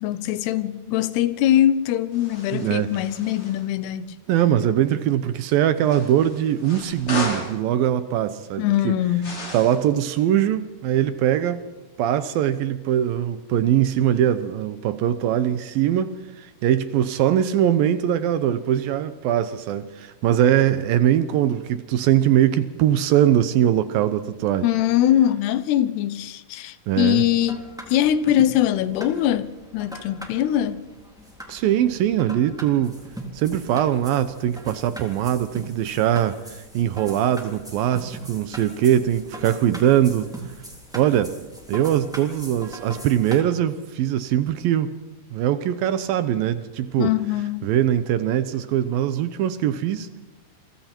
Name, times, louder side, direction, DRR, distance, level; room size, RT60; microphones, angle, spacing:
voice 1, 0.0-4.2 8.6-9.4 24.6-30.8 47.0-47.7, left 12 dB, 80° left, 2.9 m, -22 dB
sound 1, 2.1-3.6 5.8-7.6 9.2-9.9, left 2 dB, 30° left, 4.5 m, -34 dB
voice 2, 2.5-2.9 4.3-9.0 9.5-11.7 12.0-24.7 26.9-27.2 31.5-32.9 33.3-40.3 40.9-41.3 41.7-44.9 45.3-47.1 47.6-50.1, right 11 dB, 75° right, 2.3 m, -21 dB
sound 2, 27.4-43.4, equal, ahead, 2.6 m, -41 dB
29.0 x 24.0 x 4.5 m
omnidirectional pair, 4.9 m